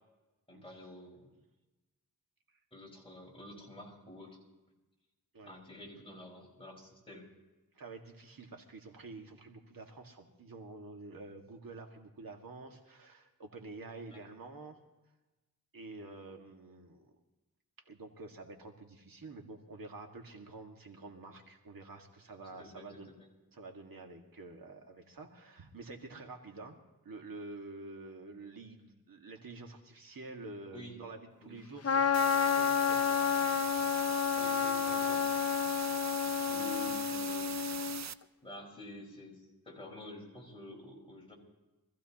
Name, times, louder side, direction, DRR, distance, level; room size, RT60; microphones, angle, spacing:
voice 1, 0.5-1.3 2.7-4.4 5.4-7.3 14.1-14.3 22.5-23.3 30.7-31.0 31.4-31.5 34.3-35.5 36.5-37.5 38.4-41.3, left 1 dB, 15° left, -3 dB, 5.1 m, -49 dB
voice 2, 7.7-14.8 15.7-17.1 17.9-23.1 23.5-26.8 27.0-33.5 36.6-36.7, right 3 dB, 70° right, 2 dB, 1.9 m, -48 dB
Trumpet, 31.8-38.0, left 8 dB, 45° left, 0.6 m, -30 dB
sound 1, 32.1-38.1, right 8 dB, 50° right, 0.5 m, -41 dB
24.5 x 15.0 x 2.9 m, 1.1 s
wide cardioid pair, 115°, 36 cm